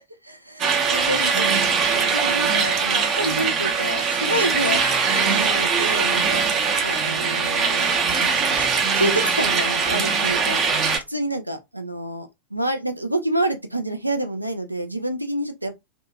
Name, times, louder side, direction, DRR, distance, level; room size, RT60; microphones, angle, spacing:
voice 1, 0.2-4.8 5.2-6.4 6.8-8.7 8.9-10.6 11.1-15.7, right 1 dB, 85° right, 0.4 m, -28 dB
sound 1, 0.6-11.0, right 5 dB, 30° right, 0.5 m, -21 dB
2.7 x 2.3 x 2.3 m
figure-of-eight pair, 90°, 0 cm